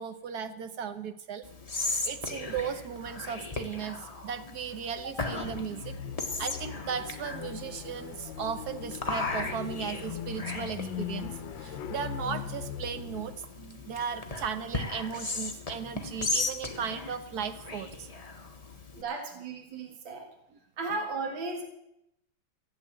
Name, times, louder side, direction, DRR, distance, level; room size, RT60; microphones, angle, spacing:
voice 1, 0.0-1.5 2.0-5.9 6.4-18.1, right 7 dB, 55° right, 10 dB, 1.4 m, -36 dB
Whispering, 1.4-19.0, left 3 dB, 20° left, 1.4 m, -37 dB
sound 1, 5.8-13.4, left 8 dB, 70° left, 1.6 m, -40 dB
voice 2, 18.9-20.3 20.8-21.6, right 3 dB, 70° right, 3 dB, 2.6 m, -35 dB
16.0 x 7.9 x 9.0 m, 0.81 s
omnidirectional pair, 2.2 m